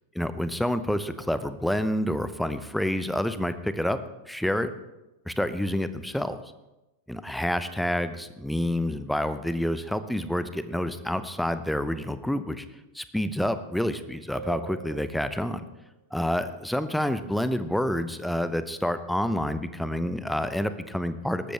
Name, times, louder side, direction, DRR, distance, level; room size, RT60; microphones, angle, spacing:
voice 1, 0.1-4.0 4.3-4.7 5.3-6.4 7.1-12.6 12.9-15.6 16.1-21.5, left 1 dB, ahead, 12 dB, 0.8 m, -28 dB
sound 1, 14.3-15.8, right 5 dB, 70° right, 1.4 m, -42 dB
18.5 x 13.5 x 3.4 m, 1.0 s
figure-of-eight pair, 90°, 0 cm